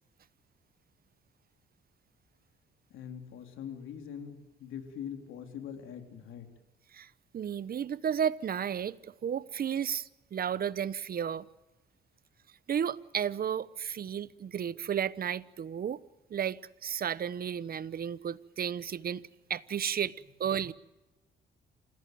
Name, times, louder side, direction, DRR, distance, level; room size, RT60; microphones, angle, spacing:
voice 1, 2.9-6.5, left 8 dB, 85° left, 3.5 m, -43 dB
voice 2, 6.9-11.5 12.7-16.0 16.3-19.2 19.5-20.7, right 8 dB, 50° right, 1.0 m, -33 dB
28.0 x 16.0 x 9.3 m
cardioid pair, 90°, 20 cm